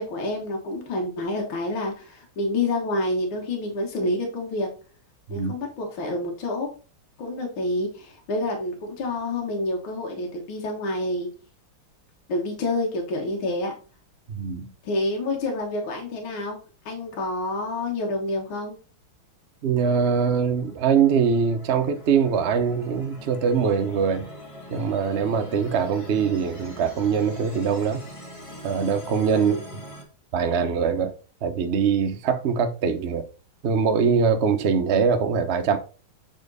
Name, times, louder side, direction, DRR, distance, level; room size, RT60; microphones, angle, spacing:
voice 1, 0.0-4.7 5.3-6.7 7.2-11.3 12.3-13.7 14.8-16.6 16.9-18.8 29.3-29.6, left 2 dB, 70° left, 2.1 m, -28 dB
voice 2, 14.3-14.7 19.6-24.3 24.7-28.0 28.6-29.6 30.3-31.1 31.4-33.3 33.6-35.8, right 6 dB, 85° right, 0.5 m, -22 dB
sound 1, 20.1-30.0, equal, 20° left, 1.0 m, -43 dB
7.2 x 4.4 x 4.0 m
omnidirectional pair, 2.3 m